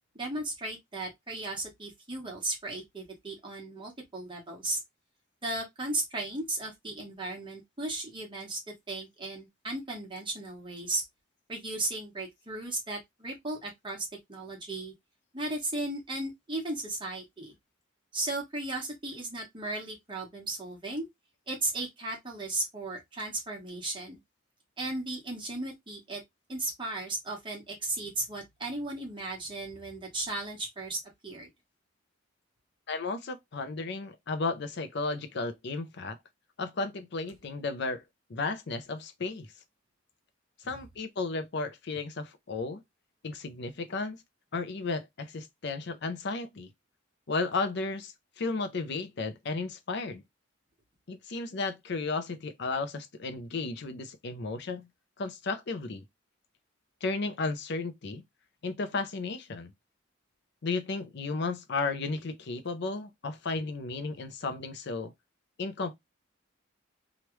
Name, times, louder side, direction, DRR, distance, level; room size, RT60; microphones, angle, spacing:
voice 1, 0.1-4.8 5.4-8.6 8.9-11.0 11.5-14.9 15.3-17.5 18.1-21.1 21.5-24.2 24.8-26.2 26.5-31.5, right 2 dB, 25° right, 1.2 m, -35 dB
voice 2, 32.9-36.2 36.6-38.0 38.3-39.5 40.6-42.8 43.2-44.2 44.5-46.7 47.3-50.2 51.1-54.9 55.2-56.0 57.0-58.2 58.6-59.7 60.6-65.1 65.6-65.9, left 3 dB, 55° left, 0.6 m, -34 dB
3.1 x 2.4 x 3.1 m
head